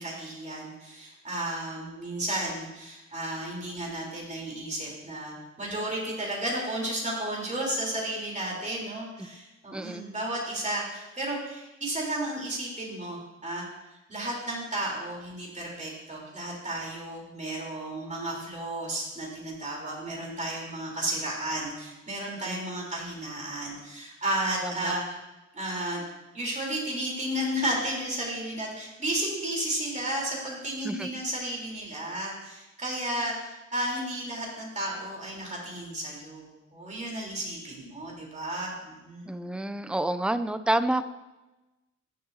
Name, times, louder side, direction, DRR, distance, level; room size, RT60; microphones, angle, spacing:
voice 1, 0.0-13.7 14.1-25.2 25.5-26.0 26.3-39.3, right 1 dB, 25° right, -3 dB, 3.7 m, -33 dB
voice 2, 9.7-10.0 22.4-22.6 24.6-24.9 30.8-31.1 39.3-41.0, right 1 dB, 5° right, 11 dB, 0.4 m, -29 dB
14.5 x 7.6 x 2.8 m, 1.1 s
cardioid pair, 105°, 30 cm